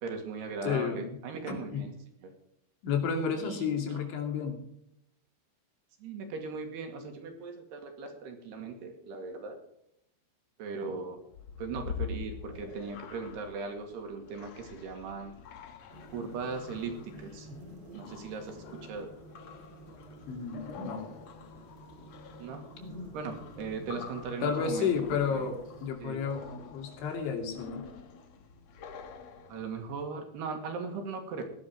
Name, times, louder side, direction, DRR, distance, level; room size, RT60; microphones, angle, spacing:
voice 1, 0.0-1.9 2.2-2.3 3.4-4.0 6.0-9.6 10.6-11.2 11.6-15.3 16.1-17.5 17.9-19.1 22.4-22.6 23.1-24.9 25.3-25.5 26.0-26.2 29.5-31.4, right 4 dB, 65° right, 5 dB, 4.2 m, -38 dB
voice 2, 0.6-1.2 1.5-1.9 2.8-4.6 20.3-21.1 24.4-25.6 25.8-26.4 26.7-27.8, left 6 dB, 85° left, 4 dB, 5.0 m, -31 dB
sound 1, 11.3-30.0, left 6 dB, 65° left, 1.7 m, -46 dB
sound 2, 15.9-25.9, equal, 30° right, 2.5 m, -50 dB
17.0 x 11.5 x 4.6 m, 0.76 s
omnidirectional pair, 5.2 m